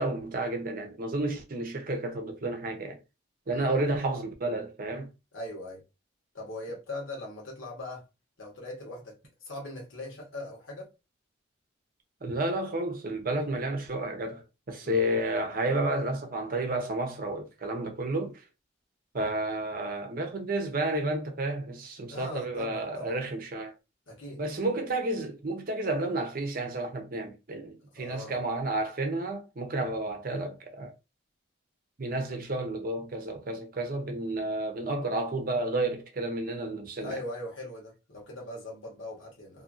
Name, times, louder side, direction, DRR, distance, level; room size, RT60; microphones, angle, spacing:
voice 1, 0.0-3.0 3.5-5.1 12.2-18.4 19.1-23.7 24.4-30.9 32.0-37.2, right 2 dB, 45° right, 0.7 m, -31 dB
voice 2, 3.5-3.8 5.3-5.8 6.3-8.0 8.4-10.9 14.8-15.1 22.1-23.2 24.1-24.4 27.9-28.4 37.0-39.6, left 1 dB, 90° left, 1.2 m, -40 dB
2.7 x 2.6 x 2.5 m
head